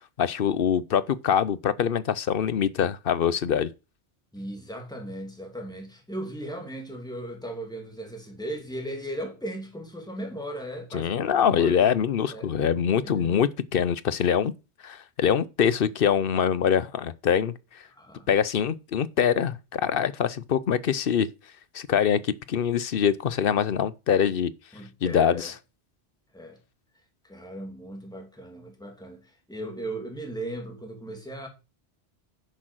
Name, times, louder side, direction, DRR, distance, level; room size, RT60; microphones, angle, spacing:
voice 1, 0.2-3.7 10.9-14.5 14.8-17.5 18.3-21.3 21.7-24.5 25.0-25.5, left 8 dB, 60° left, 0.8 m, -24 dB
voice 2, 4.3-12.0 12.3-12.5 13.0-13.4 17.9-18.3 24.7-25.5 26.3-26.6 27.2-31.5, right 1 dB, 5° left, 2.6 m, -37 dB
10.0 x 6.4 x 6.2 m
omnidirectional pair, 1.2 m